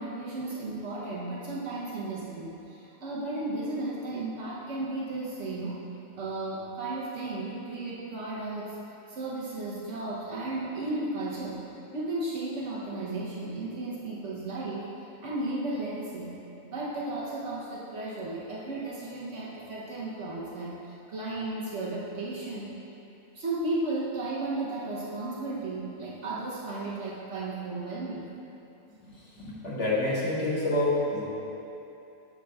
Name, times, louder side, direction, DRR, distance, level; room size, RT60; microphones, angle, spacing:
voice 1, 0.0-5.8 6.1-8.8 9.1-11.6 11.9-16.3 16.6-22.8 23.3-28.3, right 2 dB, 65° right, -6 dB, 1.2 m, -34 dB
voice 2, 29.1-31.2, left 2 dB, 60° left, -9 dB, 2.1 m, -28 dB
9.4 x 6.5 x 2.3 m, 2.8 s
omnidirectional pair, 1.4 m